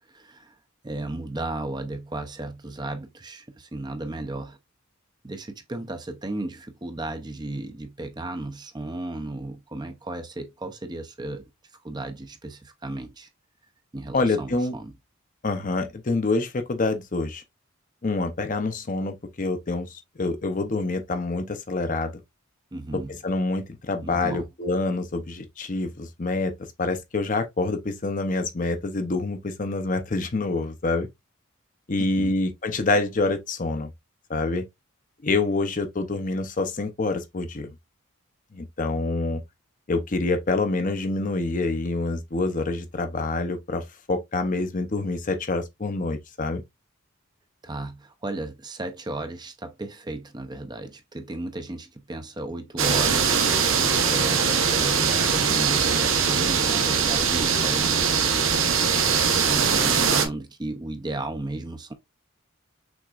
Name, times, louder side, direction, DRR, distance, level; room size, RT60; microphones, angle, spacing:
voice 1, 0.1-0.6 0.8-4.6 5.2-11.4 11.8-13.3 13.9-14.9 22.7-23.1 24.0-24.5 32.0-32.3 47.6-58.7 59.3-61.9, right 2 dB, 20° right, 0.6 m, -34 dB
voice 2, 14.1-14.7 15.4-17.4 18.0-22.2 23.1-26.5 26.8-31.1 31.9-33.9 34.3-34.7 35.2-37.7 38.5-39.4 39.9-46.6, left 3 dB, 40° left, 0.7 m, -26 dB
sound 1, 52.8-60.3, right 6 dB, 65° right, 1.0 m, -22 dB
6.2 x 3.5 x 2.4 m
head